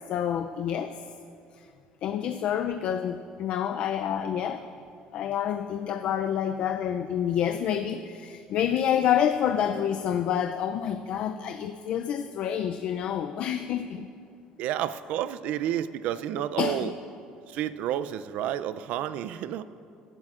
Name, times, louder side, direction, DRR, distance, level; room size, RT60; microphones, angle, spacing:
voice 1, 0.1-0.9 1.6-1.7 2.0-4.7 5.1-14.1 16.6-16.9, left 9 dB, 55° left, 7 dB, 0.4 m, -28 dB
voice 2, 14.6-16.9 17.5-19.6, right 11 dB, 65° right, 14 dB, 0.4 m, -30 dB
17.0 x 12.0 x 2.5 m, 2.5 s
cardioid pair, 145°, 2 cm